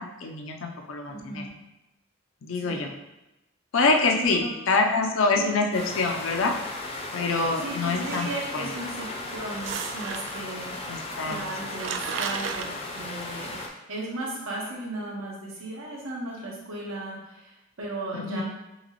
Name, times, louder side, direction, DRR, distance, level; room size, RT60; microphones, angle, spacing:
voice 1, 0.0-1.4 2.4-2.9 3.7-6.5 7.1-8.3 8.5-8.7 10.9-11.4 18.1-18.4, left 3 dB, 75° left, 3 dB, 0.5 m, -25 dB
voice 2, 1.1-1.5 2.6-2.9 4.2-4.5 5.4-5.5 7.6-10.8 11.3-13.6 13.9-18.4, right 2 dB, 90° right, -3 dB, 1.2 m, -36 dB
sound 1, 5.7-13.7, left 2 dB, 30° left, 0.5 m, -36 dB
sound 2, 7.9-8.8 9.6-10.5 11.2-11.3 11.5-12.7, right 6 dB, 65° right, 0.3 m, -34 dB
5.7 x 3.0 x 2.9 m, 0.96 s
head